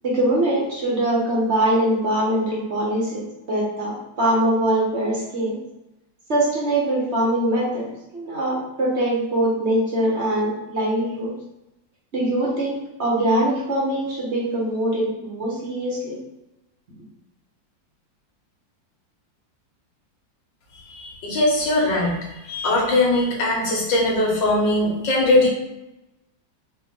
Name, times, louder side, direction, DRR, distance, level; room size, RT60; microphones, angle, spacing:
voice 1, 0.0-5.6 6.3-11.3 12.1-16.2, right 1 dB, 45° right, -4 dB, 1.2 m, -22 dB
voice 2, 20.9-22.2 22.4-25.5, left 2 dB, 75° left, -2 dB, 1.8 m, -20 dB
4.3 x 2.7 x 3.7 m, 0.94 s
omnidirectional pair, 2.0 m